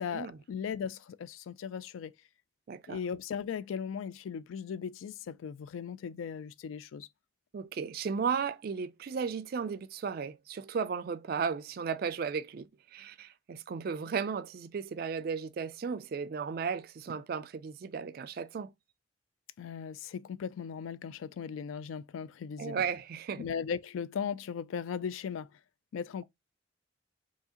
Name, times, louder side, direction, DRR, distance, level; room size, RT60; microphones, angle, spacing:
voice 1, 0.0-2.1 2.9-7.1 19.6-22.8 23.4-25.5 25.9-26.2, left 7 dB, 90° left, 0.3 m, -37 dB
voice 2, 2.7-3.0 7.5-12.7 12.9-18.7 22.6-23.5, right 6 dB, 50° right, 0.3 m, -35 dB
4.7 x 2.8 x 2.8 m
head